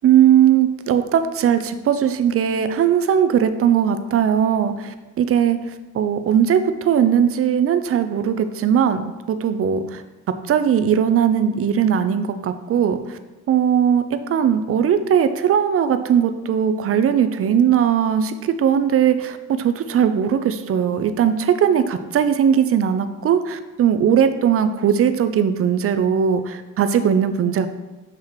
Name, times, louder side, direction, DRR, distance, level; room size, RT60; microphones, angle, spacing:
voice 1, 0.0-5.6 5.9-10.0 10.5-13.2 13.5-27.7, right 8 dB, 50° right, 10 dB, 0.5 m, -19 dB
7.5 x 2.9 x 4.8 m, 1.1 s
cardioid pair, 90°, 30 cm